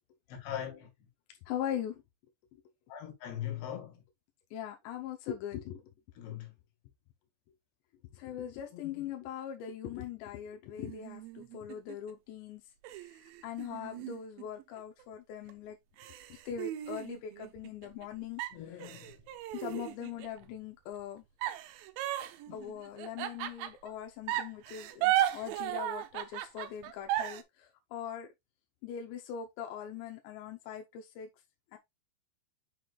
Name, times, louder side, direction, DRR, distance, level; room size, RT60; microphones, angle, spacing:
voice 1, 0.3-0.9 2.9-4.0 6.2-6.5 8.7-9.1 18.5-19.2 22.5-22.6, left 10 dB, 75° left, 3.7 m, -41 dB
voice 2, 1.5-2.0 4.5-5.9 8.1-15.8 16.3-18.4 19.5-21.2 22.5-28.3 28.8-31.3 31.7-31.8, left 9 dB, 90° left, 3.0 m, -41 dB
sound 1, 10.8-12.1 12.8-15.0 15.5-15.6 16.0-18.1 18.4-20.4 21.4-23.9 24.3-27.4, right 13 dB, 85° right, 2.0 m, -35 dB
6.8 x 5.9 x 2.3 m
omnidirectional pair, 4.9 m